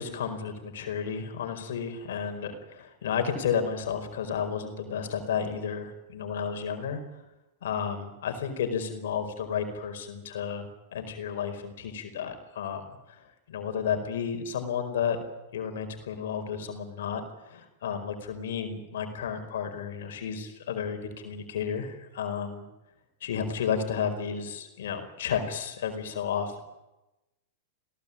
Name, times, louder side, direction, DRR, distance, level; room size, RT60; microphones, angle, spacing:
voice 1, 0.0-7.0 7.6-15.2 15.5-22.7 23.2-26.6, left 7 dB, 75° left, 6 dB, 4.9 m, -32 dB
27.5 x 17.5 x 8.7 m, 0.97 s
hypercardioid pair, 120°, 0 cm